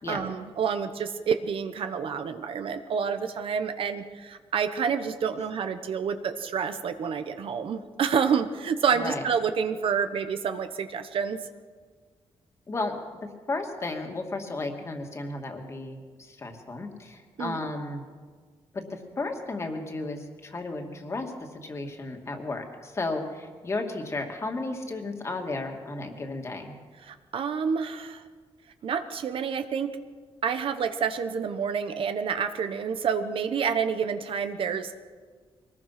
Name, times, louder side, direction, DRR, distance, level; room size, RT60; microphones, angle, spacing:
voice 1, 0.1-11.4 17.4-17.6 27.0-28.2 28.8-29.9 30.4-35.0, right 6 dB, 60° right, 9 dB, 1.1 m, -28 dB
voice 2, 8.9-9.3 12.7-13.0 13.5-18.1 18.7-26.8, left 2 dB, 25° left, 3 dB, 2.4 m, -34 dB
23.5 x 19.5 x 6.0 m, 1.5 s
wide cardioid pair, 165°, 11 cm